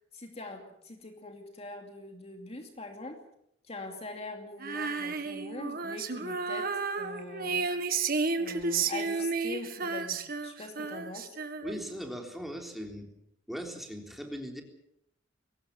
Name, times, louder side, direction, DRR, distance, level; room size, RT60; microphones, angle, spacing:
voice 1, 0.1-3.2 3.6-7.7 8.4-11.4, left 2 dB, 35° left, 3 dB, 2.6 m, -43 dB
Female singing, 4.6-12.0, right 4 dB, 55° right, 1.8 m, -32 dB
voice 2, 11.6-13.1 13.5-14.6, equal, ahead, 2 dB, 3.7 m, -39 dB
23.0 x 19.0 x 7.2 m, 0.75 s
head